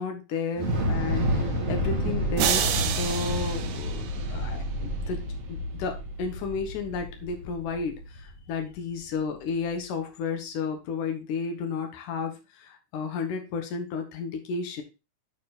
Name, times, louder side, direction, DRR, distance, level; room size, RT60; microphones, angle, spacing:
voice 1, 0.0-5.2 5.5-14.8, left 5 dB, 75° left, 4 dB, 2.8 m, -33 dB
Thunder / Explosion, 0.5-8.8, equal, 30° right, 1.9 m, -30 dB
sound 1, 2.4-4.7, right 9 dB, 85° right, 2.4 m, -29 dB
9.3 x 4.5 x 4.2 m, 0.28 s
omnidirectional pair, 3.7 m